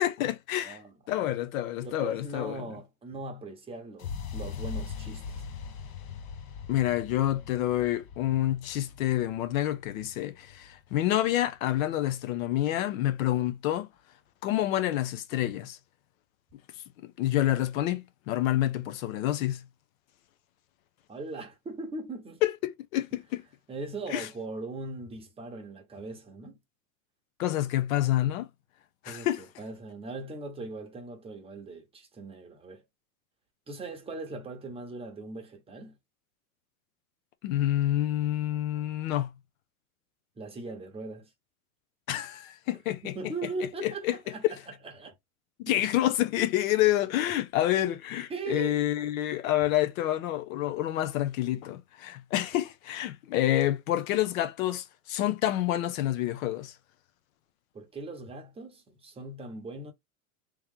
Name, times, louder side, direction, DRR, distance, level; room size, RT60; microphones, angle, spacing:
voice 1, 0.0-0.8 1.1-2.6 6.7-13.9 14.4-15.8 17.0-19.6 22.4-23.4 24.1-24.3 27.4-28.5 29.0-29.4 37.4-39.3 42.1-43.2 43.8-44.2 45.6-56.7, left 13 dB, 65° left, 0.8 m, -28 dB
voice 2, 0.6-0.9 1.8-5.4 21.1-22.4 23.7-26.6 29.1-32.8 33.7-36.0 40.4-41.3 43.0-44.6 44.8-45.1 45.7-45.9 48.3-48.8 57.7-59.9, right 3 dB, 15° right, 1.0 m, -40 dB
sound 1, 4.0-11.9, left 6 dB, 30° left, 0.6 m, -41 dB
3.2 x 2.9 x 3.6 m
supercardioid pair, 145°, 44 cm